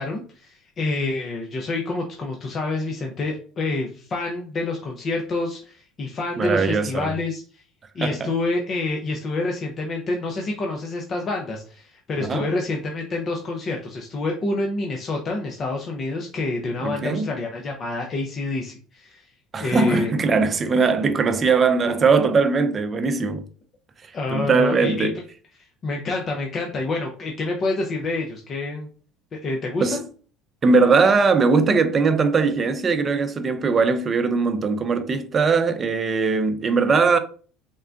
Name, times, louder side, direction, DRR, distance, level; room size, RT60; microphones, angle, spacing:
voice 1, 0.0-7.6 7.9-19.2 19.6-20.2 24.1-25.1 25.6-28.9 29.4-30.0, left 2 dB, 45° left, 0.6 m, -27 dB
voice 2, 6.4-7.1 8.0-8.3 12.2-12.5 16.8-17.3 19.5-23.4 24.0-25.2 29.8-30.0 30.6-37.2, right 4 dB, 35° right, 0.5 m, -20 dB
3.7 x 2.1 x 2.4 m
hypercardioid pair, 80°, 0 cm